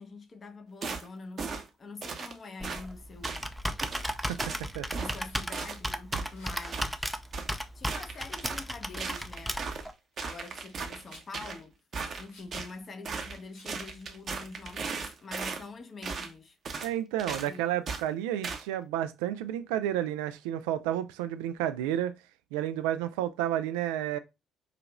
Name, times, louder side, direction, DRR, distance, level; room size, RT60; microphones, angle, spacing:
voice 1, 0.0-3.6 4.9-7.2 7.7-9.6 10.2-11.8 12.1-16.6 17.4-17.8, left 3 dB, 35° left, 0.8 m, -45 dB
sound 1, 0.8-1.1 1.4-1.7 2.0-2.3 2.6-2.8 3.2-3.4 3.8-4.1 4.4-4.6 4.9-5.2 5.5-5.8 6.1-6.9 7.3-7.5 7.9-8.6 9.0-9.9 10.2-11.6 11.9-12.7 13.0-13.4 13.7-15.6 16.0-16.3 16.6-16.9 17.2-17.5 17.9-18.0 18.4-18.6, right 5 dB, 45° right, 0.8 m, -37 dB
Computer keyboard, 2.6-9.9, equal, ahead, 0.5 m, -35 dB
Rattle, 4.2-4.4 5.2-5.6 6.3-6.6 8.1-8.3 9.1-9.3 10.1-11.3 12.3-12.6 13.5-13.8 14.8-15.1, left 2 dB, 75° left, 2.2 m, -55 dB
voice 2, 4.3-4.9 16.8-22.2 22.5-24.2, right 11 dB, 70° right, 0.3 m, -31 dB
4.9 x 2.8 x 2.2 m
figure-of-eight pair, 50°, 0 cm